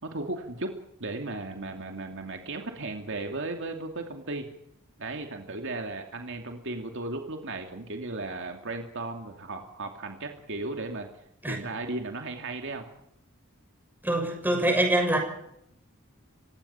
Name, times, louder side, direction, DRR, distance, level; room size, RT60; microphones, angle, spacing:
voice 1, 0.0-0.7 1.0-4.5 5.0-11.1 11.5-12.8, right 2 dB, 60° right, 4 dB, 2.6 m, -35 dB
voice 2, 14.0-15.2, right 1 dB, 10° right, 3 dB, 6.3 m, -24 dB
30.0 x 17.0 x 5.8 m, 0.78 s
head